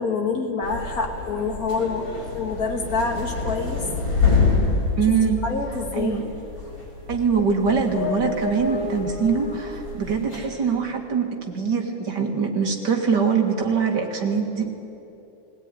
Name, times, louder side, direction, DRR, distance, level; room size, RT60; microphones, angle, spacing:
voice 1, 0.0-2.1 2.3-3.8 5.4-6.3, left 4 dB, 50° left, 2 dB, 2.7 m, -26 dB
sound 1, 0.6-10.4, left 4 dB, 75° left, 5.8 m, -27 dB
voice 2, 5.0-5.4 6.0-6.2 7.1-14.7, right 6 dB, 60° right, 2 dB, 2.6 m, -23 dB
19.0 x 18.5 x 9.8 m, 2.9 s
omnidirectional pair, 2.1 m